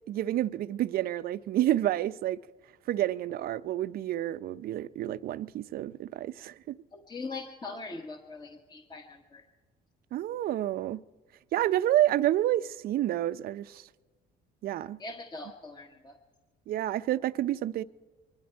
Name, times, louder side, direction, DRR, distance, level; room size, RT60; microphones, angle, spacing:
voice 1, 0.1-2.4 2.9-6.8 10.1-11.0 11.5-13.9 14.6-15.0 16.7-17.8, right 13 dB, 60° right, 0.5 m, -29 dB
voice 2, 6.9-9.4 15.0-16.2, left 3 dB, 25° left, 1.2 m, -41 dB
24.0 x 12.0 x 4.5 m
cardioid pair, 110°, 17 cm